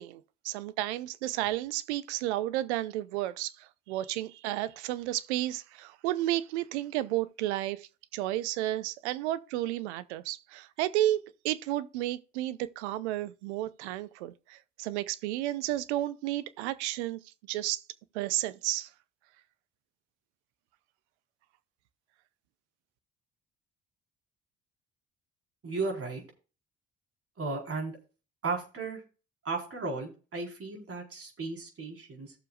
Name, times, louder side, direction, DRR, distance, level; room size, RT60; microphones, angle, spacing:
voice 1, 0.0-17.2 17.5-17.8 18.1-18.9, right 14 dB, 80° right, 0.7 m, -32 dB
voice 2, 25.6-26.2 27.4-28.0 28.4-29.0 29.4-32.3, right 3 dB, 40° right, 4.4 m, -35 dB
16.0 x 6.8 x 2.4 m
hypercardioid pair, 55°, 34 cm